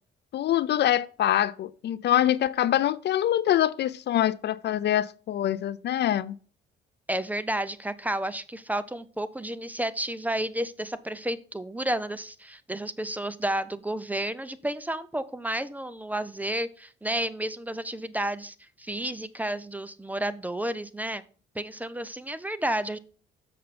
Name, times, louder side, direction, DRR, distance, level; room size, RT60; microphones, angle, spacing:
voice 1, 0.3-6.3, left 12 dB, 60° left, 0.4 m, -24 dB
voice 2, 7.1-21.2 21.5-23.0, right 1 dB, 10° right, 0.6 m, -31 dB
6.7 x 6.6 x 4.1 m
cardioid pair, 90°, 20 cm